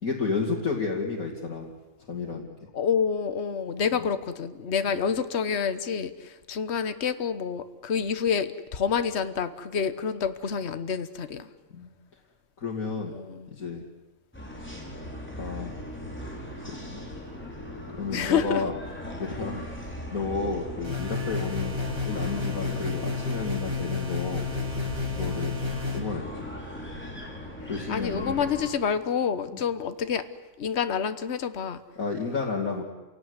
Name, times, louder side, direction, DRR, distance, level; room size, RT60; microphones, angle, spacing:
voice 1, 0.0-1.7 2.1-2.5 4.9-5.0 11.7-11.9 12.6-13.1 13.5-13.8 15.4-15.8 16.6-17.0 17.9-18.7 19.2-24.4 25.1-25.6 25.9-26.5 27.7-28.3 29.5-29.6 32.0-32.8, left 4 dB, 90° left, -2 dB, 3.0 m, -32 dB
voice 2, 2.7-11.5 13.1-13.5 18.1-18.6 27.6-30.2 30.6-31.8, left 7 dB, 50° left, 11 dB, 1.4 m, -28 dB
sound 1, 14.3-28.7, left 1 dB, 10° left, 5.1 m, -39 dB
sound 2, 20.8-26.0, left 4 dB, 20° right, 3.8 m, -31 dB
28.5 x 17.5 x 9.7 m, 1.1 s
omnidirectional pair, 1.5 m